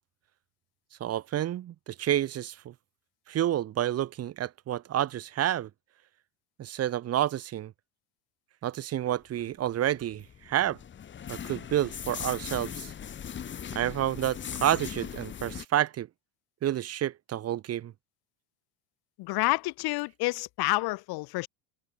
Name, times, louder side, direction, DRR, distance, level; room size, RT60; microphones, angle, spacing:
voice 1, 1.0-2.7 3.3-5.7 6.6-7.7 8.6-10.8 11.3-12.9 13.7-16.1 16.6-17.9, right 12 dB, 30° right, 3.8 m, -29 dB
sound 1, 9.7-15.7, left 8 dB, 25° left, 6.8 m, -39 dB
voice 2, 19.2-21.5, left 22 dB, 50° left, 5.7 m, -29 dB
cardioid pair, 165°, 47 cm